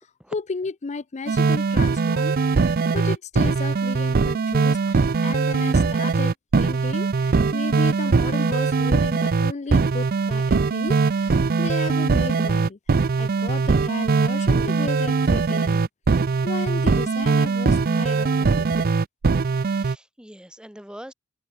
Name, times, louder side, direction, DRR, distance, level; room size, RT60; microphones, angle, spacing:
voice 1, 0.3-2.4 2.6-15.9 16.4-19.0, left 4 dB, 35° left, 0.5 m, -34 dB
sound 1, 1.3-19.9, right 4 dB, 45° right, 0.5 m, -21 dB
voice 2, 19.6-21.1, equal, 5° right, 2.2 m, -43 dB
head